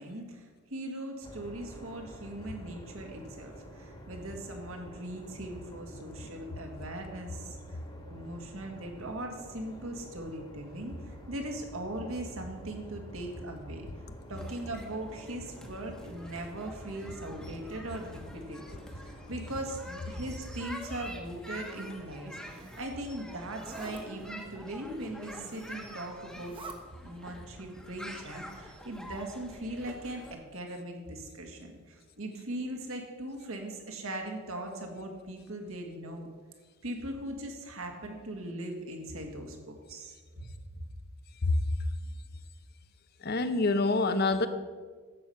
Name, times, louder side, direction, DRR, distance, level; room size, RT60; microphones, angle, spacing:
voice 1, 0.0-13.9 14.3-26.6 27.0-36.3 36.8-40.5, right 1 dB, 70° right, 3 dB, 1.9 m, -40 dB
sound 1, 1.2-19.6, equal, 20° left, 1.5 m, -49 dB
sound 2, 14.3-30.3, equal, 5° left, 1.1 m, -47 dB
Zipper (clothing), 22.1-22.9 23.5-24.0 25.1-25.8 26.3-26.8, right 2 dB, 25° right, 1.1 m, -47 dB
voice 2, 43.2-44.5, left 3 dB, 45° left, 11 dB, 0.7 m, -26 dB
12.0 x 8.2 x 5.7 m, 1.5 s
head